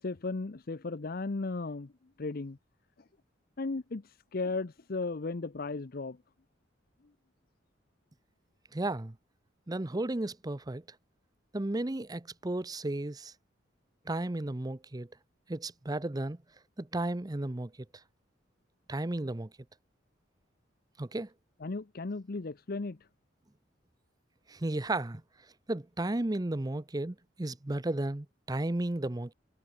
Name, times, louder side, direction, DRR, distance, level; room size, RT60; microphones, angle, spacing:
voice 1, 0.0-1.9 2.2-2.6 3.6-4.0 4.3-6.2 21.6-23.0, left 3 dB, 50° left, 0.7 m, -35 dB
voice 2, 8.7-9.2 9.7-10.8 11.5-13.3 14.1-15.1 15.5-16.4 16.8-17.7 18.9-19.5 21.0-21.3 24.5-25.2 25.7-29.3, right 2 dB, 20° right, 0.7 m, -33 dB
head